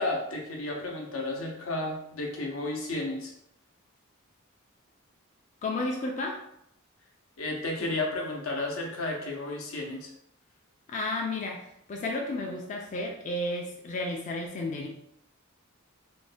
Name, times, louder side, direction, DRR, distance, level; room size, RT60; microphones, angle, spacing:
voice 1, 0.0-3.3 7.4-10.1, left 2 dB, 80° left, 0 dB, 0.7 m, -32 dB
voice 2, 5.6-6.4 7.8-7.9 10.9-14.9, left 2 dB, 35° left, 0 dB, 0.3 m, -32 dB
2.6 x 2.1 x 3.3 m, 0.76 s
head